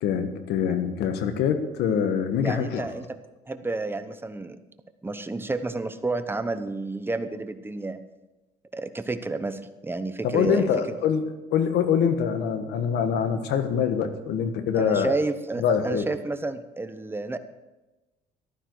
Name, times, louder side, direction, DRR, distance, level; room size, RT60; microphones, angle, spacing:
voice 1, 0.0-2.9 10.2-15.2 15.6-16.1, left 7 dB, 80° left, 8 dB, 1.5 m, -24 dB
voice 2, 2.4-3.2 3.5-4.6 5.0-8.0 8.7-11.0 14.7-17.4, right 2 dB, 15° right, 10 dB, 1.0 m, -30 dB
14.5 x 11.5 x 4.8 m, 1.1 s
cardioid pair, 110°, 17 cm